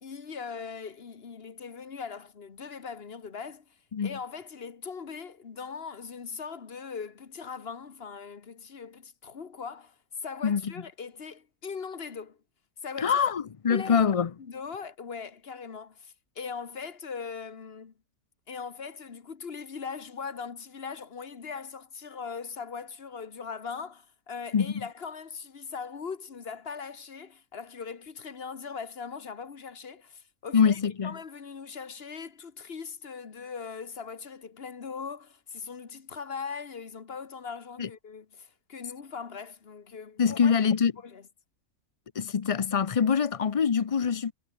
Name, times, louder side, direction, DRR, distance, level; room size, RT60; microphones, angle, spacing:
voice 1, 0.0-3.6 4.0-12.4 12.8-13.2 13.7-14.0 14.4-17.9 18.5-40.6 41.0-41.2, left 5 dB, 45° left, 1.5 m, -40 dB
voice 2, 13.0-14.3 24.5-24.7 30.5-31.1 37.8-37.9 40.2-40.9 42.2-44.3, left 6 dB, 60° left, 0.3 m, -24 dB
omnidirectional pair, 1.5 m